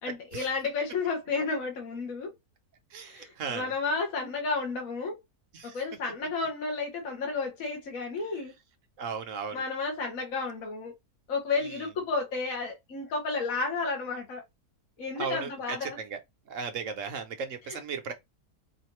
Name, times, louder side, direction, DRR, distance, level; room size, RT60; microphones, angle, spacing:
voice 1, 0.0-2.3 3.0-5.2 5.6-8.5 9.5-10.9 11.3-14.4 15.0-16.0 17.7-17.8, left 4 dB, 65° left, 1.6 m, -32 dB
voice 2, 2.9-3.7 5.5-5.8 9.0-9.6 11.6-11.9 15.1-16.2 16.5-18.1, right 5 dB, 60° right, 1.2 m, -36 dB
4.9 x 2.6 x 3.1 m
omnidirectional pair, 1.6 m